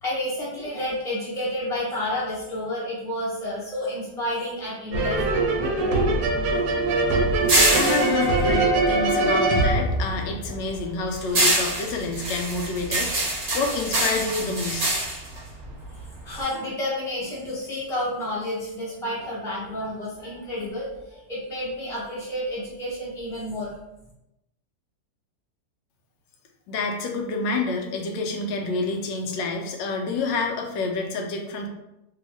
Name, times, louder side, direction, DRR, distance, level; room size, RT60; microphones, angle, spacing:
voice 1, 0.0-5.2 15.9-23.7, left 1 dB, 5° left, -7 dB, 0.6 m, -30 dB
sound 1, 4.9-10.7, right 2 dB, 70° right, 1.1 m, -22 dB
sound 2, 5.1-9.6 10.0-16.4, right 1 dB, 40° right, 0.8 m, -26 dB
voice 2, 7.7-14.9 26.7-31.7, left 3 dB, 90° left, 2 dB, 1.3 m, -28 dB
3.0 x 2.7 x 3.0 m, 0.90 s
omnidirectional pair, 1.9 m